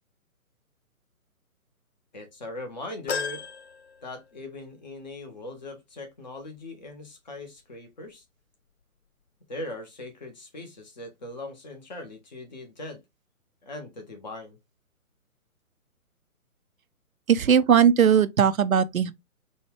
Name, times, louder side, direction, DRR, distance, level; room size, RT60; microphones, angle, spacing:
voice 1, 2.1-3.5 4.0-8.2 9.5-13.0 13.6-14.6, left 2 dB, 30° left, 0.9 m, -40 dB
sound 1, 3.1-4.7 5.1-5.2 6.5-6.6, left 5 dB, 50° left, 0.5 m, -35 dB
voice 2, 17.3-19.1, right 8 dB, 65° right, 0.5 m, -19 dB
4.1 x 2.3 x 3.3 m
figure-of-eight pair, 140°, 44 cm